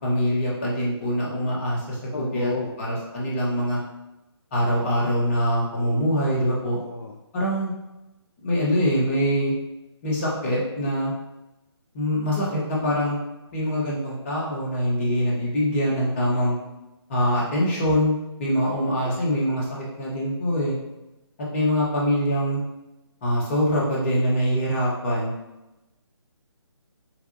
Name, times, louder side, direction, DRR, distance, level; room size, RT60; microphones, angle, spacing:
voice 1, 0.0-3.8 4.5-6.8 7.3-7.7 8.4-9.5 10.0-11.1 11.9-13.2 13.5-16.6 17.1-18.1 18.4-20.7 21.5-22.6 23.2-25.3, equal, 25° left, -4 dB, 1.2 m, -24 dB
voice 2, 2.1-2.8 6.8-7.2 19.0-19.2, left 3 dB, 55° left, 2 dB, 0.5 m, -32 dB
7.0 x 2.3 x 2.8 m, 0.99 s
figure-of-eight pair, 145°, 14 cm